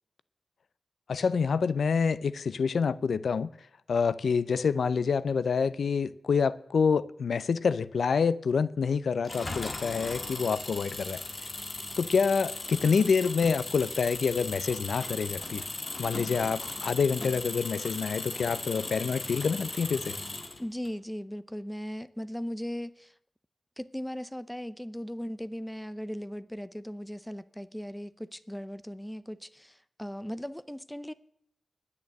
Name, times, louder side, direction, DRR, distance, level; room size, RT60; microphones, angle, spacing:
voice 1, 1.1-3.5 3.9-11.2 12.0-15.6 16.0-20.2, left 5 dB, 85° left, 0.5 m, -27 dB
Engine, 9.2-20.9, left 2 dB, 40° left, 1.7 m, -37 dB
voice 2, 20.6-23.1 23.8-31.1, equal, 5° left, 0.6 m, -38 dB
10.5 x 9.7 x 7.6 m
wide cardioid pair, 145°, 0 cm